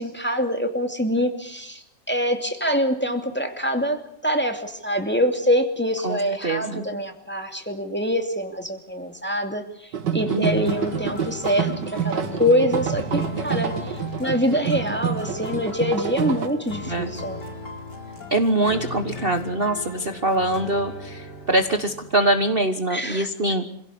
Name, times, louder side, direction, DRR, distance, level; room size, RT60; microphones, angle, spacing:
voice 1, 0.0-17.4 22.9-23.3, equal, 5° left, 5 dB, 2.5 m, -25 dB
voice 2, 6.0-6.9 10.3-10.7 16.9-17.1 18.3-23.7, right 1 dB, 35° right, 7 dB, 1.5 m, -23 dB
Tokyo - Drum Circle in Yoyogi Park, 9.9-16.5, right 8 dB, 85° right, 2.2 m, -27 dB
sound 1, 10.4-22.7, left 3 dB, 75° left, 4.9 m, -37 dB
26.5 x 17.0 x 8.6 m, 0.74 s
omnidirectional pair, 1.8 m